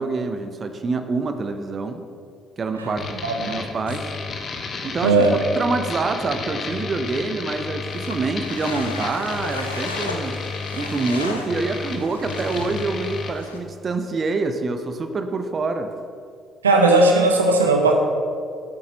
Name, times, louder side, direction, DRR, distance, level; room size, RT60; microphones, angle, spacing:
voice 1, 0.0-2.0 2.6-4.1 4.8-5.2 5.6-10.4 10.7-15.9, right 3 dB, 35° right, 8 dB, 0.8 m, -26 dB
sound 1, 3.0-13.3, left 4 dB, 45° left, 1.2 m, -32 dB
voice 2, 3.2-3.6 5.0-5.3 16.6-17.9, right 2 dB, 80° right, 3 dB, 0.8 m, -17 dB
sound 2, 7.9-13.6, left 2 dB, 85° left, 0.7 m, -35 dB
14.0 x 8.5 x 3.9 m, 2.3 s
figure-of-eight pair, 45°, 0 cm